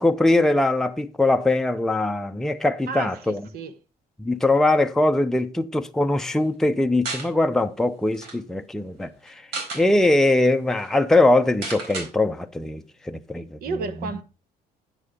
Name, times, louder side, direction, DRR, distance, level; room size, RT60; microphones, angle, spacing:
voice 1, 0.0-3.5 4.2-9.5 9.7-14.1, left 2 dB, 5° left, 0.6 m, -22 dB
voice 2, 2.9-3.7 13.6-14.2, right 4 dB, 65° right, 1.2 m, -32 dB
sound 1, 7.0-7.3 7.8-7.9 8.1-8.4 9.3-9.8 10.4-10.5 10.7-10.9 11.6-12.1, right 3 dB, 85° right, 4.2 m, -32 dB
9.8 x 8.3 x 3.7 m
cardioid pair, 110°, 17 cm